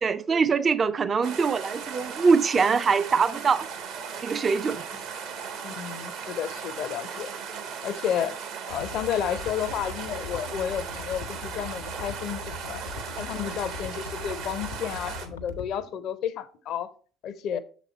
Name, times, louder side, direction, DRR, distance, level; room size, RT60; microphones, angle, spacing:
voice 1, 0.0-3.7 4.2-4.9, right 5 dB, 35° right, 0.4 m, -23 dB
sound 1, 1.2-15.3, right 6 dB, 65° right, 1.1 m, -37 dB
voice 2, 5.6-7.3 7.8-8.4 8.7-12.8 13.2-16.9 17.2-17.6, left 9 dB, 55° left, 0.5 m, -31 dB
sound 2, 8.7-15.7, left 4 dB, 85° left, 0.7 m, -40 dB
6.8 x 4.1 x 4.4 m
hypercardioid pair, 60°, 0 cm